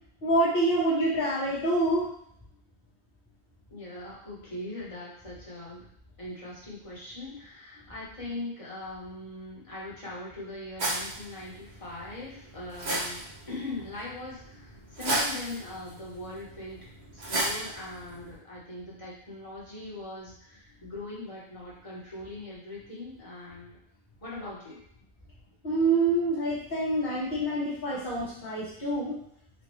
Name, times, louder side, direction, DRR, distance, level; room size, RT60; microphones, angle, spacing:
voice 1, 0.2-2.1 25.6-29.1, right 2 dB, 55° left, -11 dB, 1.3 m, -26 dB
voice 2, 3.7-5.8 6.2-16.8 17.1-23.8 24.2-24.8, left 2 dB, 30° left, -7 dB, 1.3 m, -41 dB
sound 1, 10.8-18.3, right 1 dB, 70° right, 1.3 m, -35 dB
4.3 x 2.6 x 3.1 m, 0.70 s
omnidirectional pair, 1.1 m